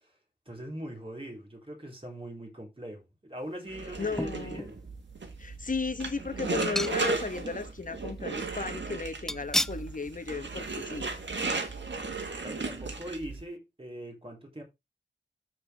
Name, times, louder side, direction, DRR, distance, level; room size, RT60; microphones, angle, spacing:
voice 1, 0.5-4.8 12.4-14.6, right 1 dB, 30° right, 3.9 m, -41 dB
sound 1, 3.7-13.4, right 4 dB, 80° right, 1.8 m, -35 dB
voice 2, 4.0-4.6 5.4-11.1, left 4 dB, 45° left, 1.1 m, -35 dB
sound 2, 4.2-4.8 5.3-5.4 6.6-7.4 7.7-7.8 9.3-9.9 10.3-10.5 10.8-10.9, equal, ahead, 0.3 m, -33 dB
13.5 x 4.7 x 3.4 m
wide cardioid pair, 70°, 19 cm